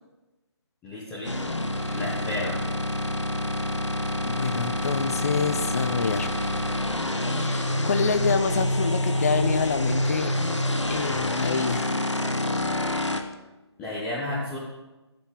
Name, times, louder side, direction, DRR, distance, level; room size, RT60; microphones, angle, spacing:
voice 1, 0.8-1.5 1.9-2.5 13.8-14.6, left 1 dB, 10° left, -7 dB, 1.0 m, -32 dB
sound 1, 1.2-13.2, left 1 dB, 85° left, 1.2 m, -27 dB
voice 2, 4.3-6.5 7.3-10.3 10.9-12.0, left 5 dB, 35° left, 10 dB, 0.6 m, -27 dB
13.5 x 7.4 x 3.7 m, 1.1 s
figure-of-eight pair, 150°, 15 cm